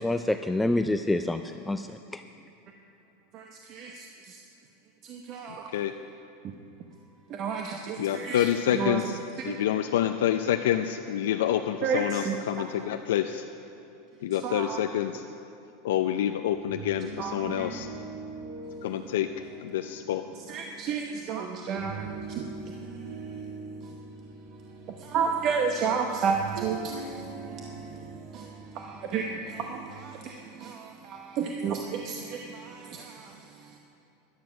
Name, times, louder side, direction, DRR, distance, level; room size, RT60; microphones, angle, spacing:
voice 1, 0.0-2.2, left 2 dB, 5° left, 7 dB, 0.3 m, -27 dB
voice 2, 3.3-4.4 5.0-5.7 6.4-6.5 7.3-9.0 9.4-9.6 11.8-12.8 14.4-14.8 17.2-17.7 20.5-23.5 23.8-23.9 24.9-33.8, right 6 dB, 45° right, 3 dB, 0.8 m, -33 dB
voice 3, 5.5-5.9 8.0-9.2 9.4-13.5 14.2-15.2 15.8-17.9 18.8-19.3 19.6-20.2, left 11 dB, 80° left, 6 dB, 0.5 m, -27 dB
sound 1, 16.5-29.9, right 4 dB, 90° right, 2.2 m, -42 dB
12.0 x 11.5 x 6.1 m, 3.0 s
supercardioid pair, 130°, 0 cm